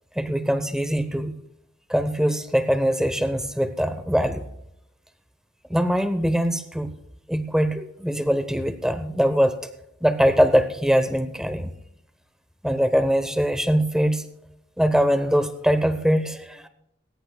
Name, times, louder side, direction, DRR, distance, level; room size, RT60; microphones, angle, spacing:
voice 1, 0.2-1.3 1.9-4.4 5.7-6.9 7.3-9.6 10.0-11.7 12.6-14.3 14.8-16.7, equal, 5° right, 10 dB, 0.8 m, -22 dB
20.0 x 18.5 x 2.3 m, 0.83 s
head